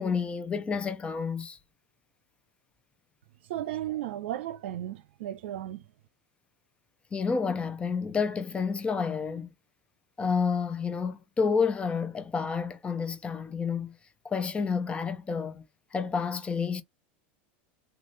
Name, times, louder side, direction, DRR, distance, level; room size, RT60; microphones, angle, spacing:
voice 1, 0.0-1.6 7.1-9.5 10.2-13.9 14.2-15.6 15.9-16.8, left 5 dB, 20° left, 0.6 m, -29 dB
voice 2, 3.5-5.8, right 12 dB, 80° right, 0.6 m, -34 dB
3.7 x 2.4 x 3.1 m
supercardioid pair, 125°, 6 cm